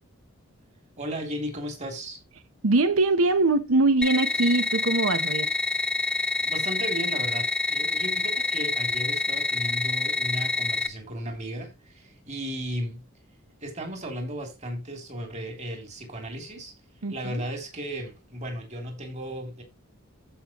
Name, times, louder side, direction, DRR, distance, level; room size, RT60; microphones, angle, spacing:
voice 1, 1.0-2.2 5.9-13.0 13.6-16.7 17.1-19.6, equal, 35° right, 3.1 m, -35 dB
voice 2, 2.6-5.5 17.0-17.4, right 2 dB, 85° right, 1.0 m, -22 dB
sound 1, 4.0-10.9, left 4 dB, 5° left, 0.9 m, -27 dB
14.5 x 5.5 x 3.0 m
head